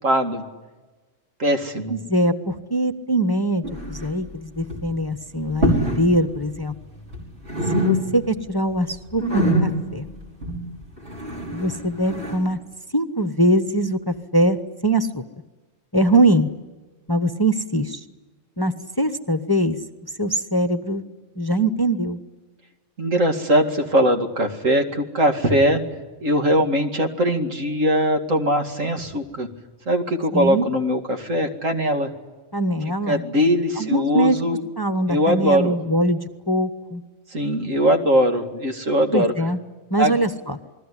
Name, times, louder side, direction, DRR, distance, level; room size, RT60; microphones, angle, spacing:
voice 1, 0.0-0.4 1.4-2.0 23.0-25.8 26.2-29.5 29.9-32.1 33.1-34.6 35.1-35.8 37.3-39.3 40.0-40.1, equal, 75° right, 5 dB, 2.8 m, -21 dB
voice 2, 1.9-6.7 7.7-10.0 11.5-12.6 12.9-15.2 15.9-16.5 17.1-18.0 18.6-19.8 20.2-21.0 21.4-22.2 30.3-30.7 32.5-33.2 33.8-34.4 34.8-37.0 39.1-39.6 39.9-40.6, right 1 dB, 20° left, 8 dB, 1.1 m, -22 dB
sound 1, 3.6-4.3 4.6-5.0 5.5-6.1 6.3-7.2 7.5-8.4 8.7-12.5, equal, 55° right, 5.9 m, -25 dB
28.5 x 20.5 x 10.0 m, 1.3 s
omnidirectional pair, 1.4 m